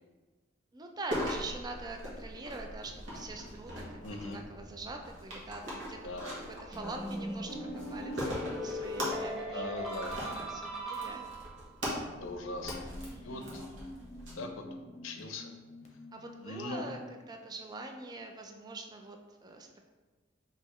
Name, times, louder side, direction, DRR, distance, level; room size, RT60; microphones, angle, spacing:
voice 1, 0.7-6.0 6.3-9.9 10.3-11.3 13.1-13.5 16.1-19.9, right 2 dB, 20° right, 3 dB, 0.4 m, -44 dB
sound 1, 1.1-14.3, equal, 75° right, 1.3 m, -41 dB
voice 2, 4.0-4.4 6.0-6.4 9.5-10.1 12.2-12.8 13.2-13.7 14.4-14.6 15.0-15.5 16.4-16.9, left 2 dB, 85° left, 4 dB, 0.6 m, -40 dB
sound 2, 6.7-11.7, equal, ahead, 0.7 m, -39 dB
sound 3, 11.8-16.9, left 2 dB, 35° left, 0.7 m, -49 dB
5.7 x 2.9 x 3.0 m, 1.3 s
head